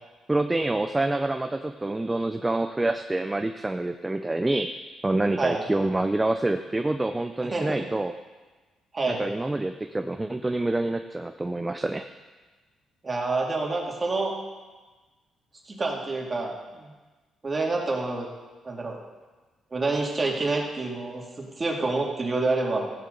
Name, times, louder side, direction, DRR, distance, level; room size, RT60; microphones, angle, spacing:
voice 1, 0.3-4.8 5.0-8.1 9.1-12.1, right 2 dB, 15° right, 7 dB, 0.5 m, -27 dB
voice 2, 13.0-14.4 15.7-16.9 17.4-18.3 18.6-19.0 19.7-22.9, right 3 dB, 30° right, -1 dB, 2.5 m, -27 dB
15.5 x 10.5 x 4.0 m, 1.3 s
cardioid pair, 90°, 0 cm